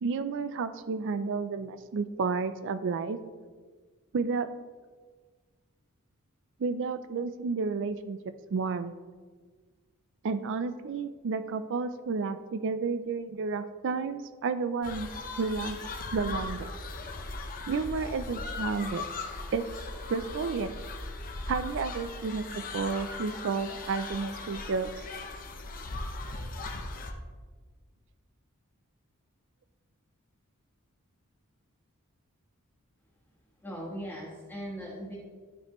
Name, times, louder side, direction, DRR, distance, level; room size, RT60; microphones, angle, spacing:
voice 1, 0.0-3.2 4.1-4.5 6.6-8.2 8.5-8.9 10.2-15.1 15.4-15.8 16.1-16.7 17.7-19.1 19.5-19.6 20.1-20.8 21.5-24.9, right 4 dB, 60° right, 11 dB, 0.4 m, -31 dB
sound 1, 14.8-27.1, left 3 dB, 40° left, 0.8 m, -38 dB
voice 2, 33.6-35.2, equal, 10° left, -9 dB, 1.4 m, -39 dB
12.0 x 5.3 x 3.0 m, 1.5 s
head